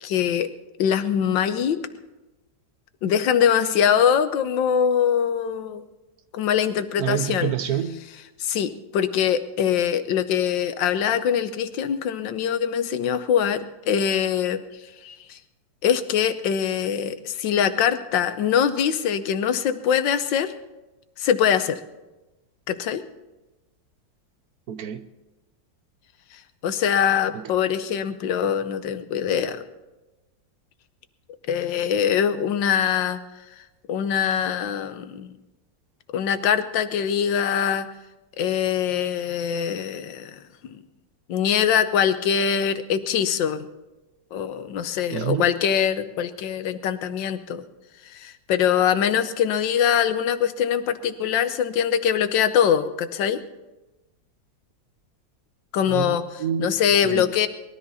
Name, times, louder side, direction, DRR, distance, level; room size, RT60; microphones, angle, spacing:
voice 1, 0.0-0.5 0.8-1.8 3.0-5.8 6.3-7.5 8.4-14.6 15.0-15.4 15.8-20.5 21.2-21.8 22.7-23.0 26.3-29.6 31.5-33.2 33.9-35.3 36.1-37.9 38.4-40.8 41.3-43.7 44.3-47.7 48.1-53.4 55.7-56.2 56.6-57.5, left 8 dB, 85° left, 1.6 m, -23 dB
voice 2, 7.0-8.0 24.7-25.1 27.3-27.5 45.1-45.5 55.9-56.7 57.0-57.3, right 9 dB, 65° right, 1.2 m, -28 dB
20.5 x 13.5 x 4.2 m
omnidirectional pair, 1.9 m